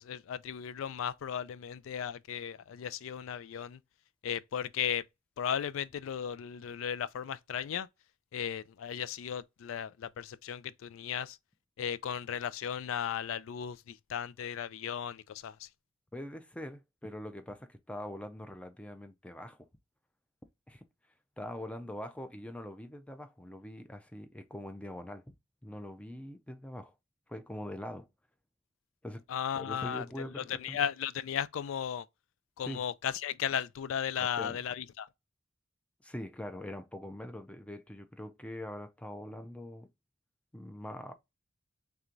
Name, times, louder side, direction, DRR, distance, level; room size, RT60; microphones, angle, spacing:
voice 1, 0.0-3.8 4.2-5.0 5.4-7.9 8.3-11.4 11.8-15.7 29.3-32.1 32.6-35.1, left 8 dB, 80° left, 0.3 m, -36 dB
voice 2, 16.1-19.7 20.7-20.9 21.4-25.4 25.6-26.9 27.3-28.1 29.0-29.2 29.6-30.8 32.7-32.8 34.2-34.6 36.0-39.9 40.5-41.1, left 1 dB, 5° left, 0.5 m, -43 dB
3.4 x 3.0 x 3.8 m
head